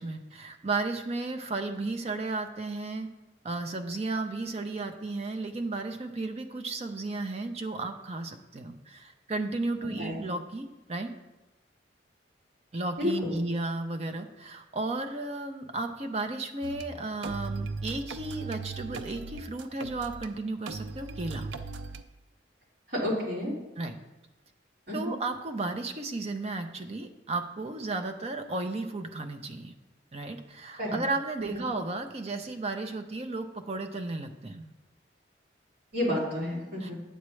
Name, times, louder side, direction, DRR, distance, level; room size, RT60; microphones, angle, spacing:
voice 1, 0.0-3.1 3.4-11.1 12.7-21.5 23.8-24.0 24.9-29.7 30.1-34.7 36.8-36.9, right 2 dB, 35° right, 6 dB, 0.6 m, -34 dB
voice 2, 13.0-13.4 22.9-23.5 24.9-25.1 30.8-31.0 31.4-31.7 35.9-37.0, left 1 dB, 55° right, -6 dB, 2.8 m, -30 dB
sound 1, 16.6-16.9 17.2-20.3 20.7-22.0, right 3 dB, 85° right, 0.5 m, -38 dB
9.2 x 7.2 x 3.2 m, 1.0 s
head